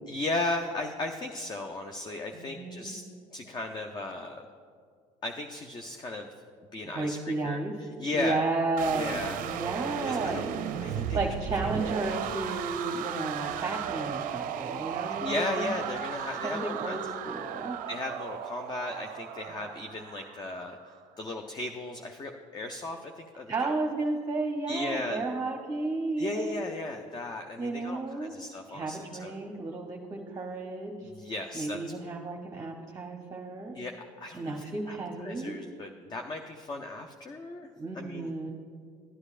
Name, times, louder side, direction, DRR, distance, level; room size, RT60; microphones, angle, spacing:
voice 1, 0.1-3.0 3.3-4.4 5.2-6.3 6.7-8.5 8.9-9.4 10.0-10.4 10.8-11.3 11.6-11.7 12.1-12.2 15.2-17.0 17.9-20.8 21.2-23.8 24.7-25.2 26.2-29.3 31.0-31.8 33.7-37.7 37.9-38.3, left 2 dB, 25° left, 4 dB, 0.6 m, -36 dB
voice 2, 2.3-2.9 6.8-7.7 8.1-10.5 11.1-15.8 16.4-17.8 23.5-26.7 27.6-28.3 28.7-31.1 31.5-33.7 34.3-35.5 37.8-38.5, right 3 dB, 25° right, 1 dB, 0.9 m, -33 dB
sound 1, 8.8-20.8, right 9 dB, 60° right, 0.5 m, -35 dB
12.5 x 9.6 x 2.5 m, 2.1 s
hypercardioid pair, 75°, 16 cm